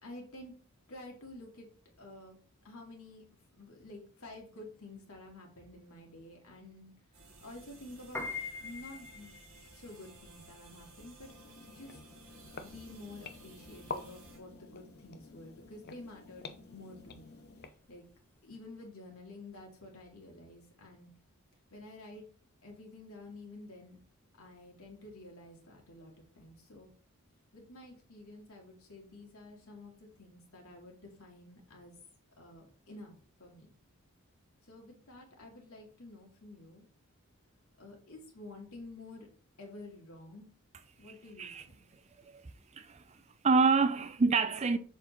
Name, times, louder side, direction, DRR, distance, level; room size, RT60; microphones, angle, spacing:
voice 1, 0.0-0.5 0.9-1.7 2.0-2.4 2.6-3.3 3.5-8.3 8.6-9.3 9.7-11.3 11.7-12.0 12.5-18.1 18.4-21.1 21.7-22.2 22.6-24.0 24.4-26.9 27.5-32.0 32.4-33.7 34.6-36.9 37.8-39.3 39.6-40.5 41.0-41.8, left 2 dB, 80° left, 2.3 m, -50 dB
sound 1, 7.1-14.4, right 3 dB, 65° right, 1.8 m, -56 dB
Piano, 8.0-18.4, left 4 dB, 10° left, 0.8 m, -46 dB
sound 2, 11.3-17.7, left 4 dB, 45° left, 0.6 m, -48 dB
voice 2, 42.7-43.2 43.4-44.8, right 4 dB, 30° right, 0.4 m, -27 dB
7.0 x 4.2 x 3.9 m
head